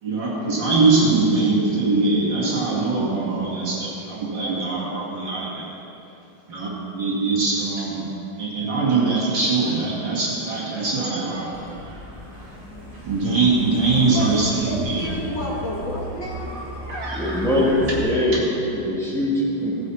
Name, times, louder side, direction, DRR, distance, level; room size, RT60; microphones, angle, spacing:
voice 1, 0.0-5.7 6.5-8.0 8.4-12.1 12.4-12.5 12.9-15.0 16.5-17.4 18.3-18.4, right 3 dB, 60° right, -5 dB, 2.9 m, -22 dB
Truck, 11.5-18.0, left 1 dB, 15° left, 2.0 m, -36 dB
voice 2, 14.1-16.5, left 1 dB, 60° left, -5 dB, 2.8 m, -30 dB
voice 3, 17.1-18.5 18.7-19.8, left 1 dB, ahead, -7 dB, 2.7 m, -22 dB
17.5 x 9.8 x 4.2 m, 2.7 s
omnidirectional pair, 2.3 m